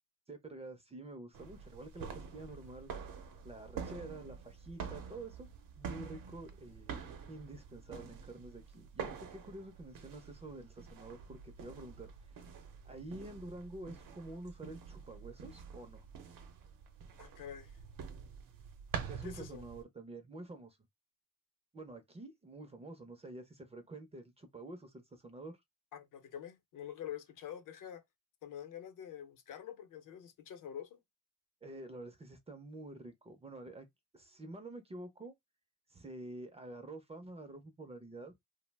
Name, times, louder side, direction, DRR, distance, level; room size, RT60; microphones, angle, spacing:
voice 1, 0.3-2.9 3.4-5.5 5.8-6.9 7.3-12.1 12.8-16.1 19.1-20.8 21.7-25.6 31.6-33.9 34.1-35.3 35.9-38.3, right 2 dB, 20° right, 0.4 m, -48 dB
sound 1, 1.3-19.8, right 6 dB, 80° right, 0.6 m, -47 dB
voice 2, 17.2-17.8 19.2-19.6 25.9-28.0 28.4-31.0, left 9 dB, 75° left, 0.6 m, -46 dB
2.6 x 2.0 x 3.2 m
wide cardioid pair, 160°, 32 cm